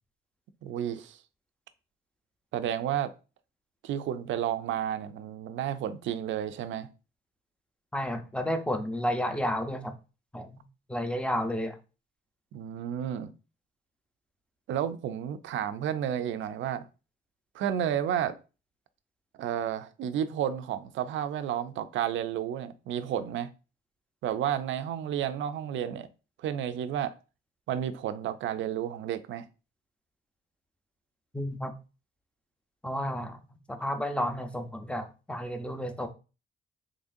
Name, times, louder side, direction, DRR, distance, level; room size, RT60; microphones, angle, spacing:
voice 1, 0.6-1.2 2.5-3.1 3.8-6.9 12.5-13.3 14.7-16.9 17.5-18.4 19.4-23.5 24.2-26.1 26.4-27.1 27.7-29.4, right 10 dB, 75° right, 0.5 m, -31 dB
voice 2, 7.9-10.0 10.3-10.6 10.9-11.8 31.3-31.7 32.8-33.4 33.7-36.1, equal, 5° left, 0.6 m, -31 dB
3.7 x 3.3 x 2.6 m
cardioid pair, 90°, 20 cm